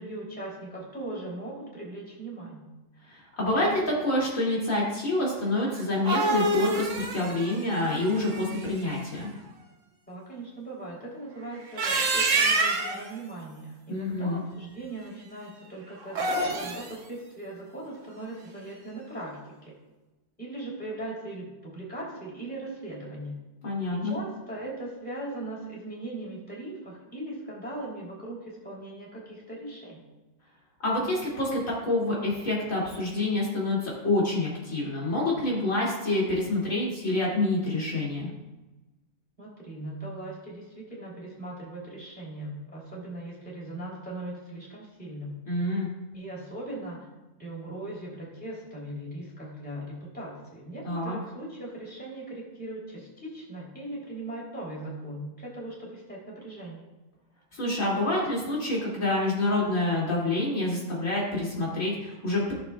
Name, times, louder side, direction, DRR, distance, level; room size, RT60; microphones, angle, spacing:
voice 1, 0.0-2.7 10.1-19.7 20.4-23.3 23.9-30.0 39.4-45.4 46.1-47.1 47.4-56.8, right 1 dB, 5° left, -6 dB, 3.2 m, -39 dB
voice 2, 3.1-9.3 13.9-14.4 23.6-24.2 30.8-38.3 45.5-45.9 50.8-51.2 57.5-62.5, left 2 dB, 75° left, -5 dB, 2.9 m, -27 dB
sound 1, 5.8-8.8 11.6-13.1 16.0-16.9, right 2 dB, 75° right, 1.4 m, -27 dB
15.5 x 6.8 x 2.3 m, 1.1 s
omnidirectional pair, 1.4 m